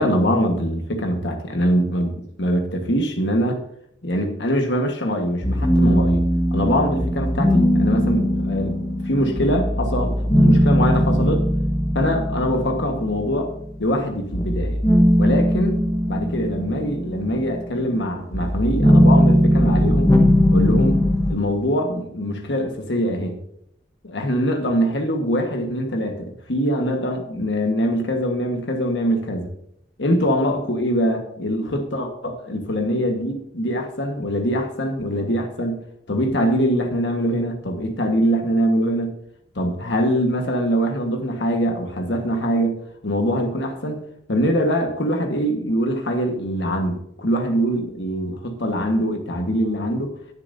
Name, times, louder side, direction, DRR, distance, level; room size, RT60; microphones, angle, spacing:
voice 1, 0.0-2.1 2.4-3.6 4.0-6.2 6.5-8.8 9.0-11.4 11.9-13.5 13.8-14.8 15.2-20.2 20.5-23.4 24.0-29.5 30.0-35.8 36.1-39.1 39.5-44.0 44.3-50.2, equal, 90° left, 4 dB, 1.4 m, -23 dB
sound 1, 5.4-13.8 14.3-21.4, equal, 20° left, 1.2 m, -19 dB
18.5 x 7.0 x 2.7 m, 0.70 s
head